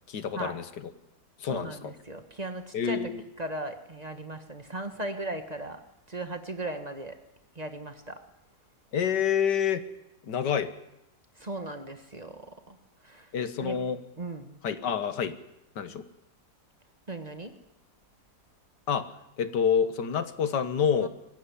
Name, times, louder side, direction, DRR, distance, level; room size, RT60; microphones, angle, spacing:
voice 1, 0.1-0.9 1.4-1.9 2.7-3.2 8.9-9.8 10.2-10.7 13.3-14.0 14.6-15.3 15.8-16.0 18.9-19.1 19.4-21.1, left 7 dB, 85° left, 11 dB, 2.0 m, -28 dB
voice 2, 1.5-3.0 3.4-5.8 6.1-7.2 7.5-8.2 11.4-12.4 12.7-12.8 13.0-13.3 13.6-13.8 14.2-14.6 17.1-17.5 21.0-21.1, right 2 dB, 25° right, 7 dB, 1.6 m, -37 dB
23.0 x 16.0 x 10.0 m, 0.88 s
omnidirectional pair, 1.8 m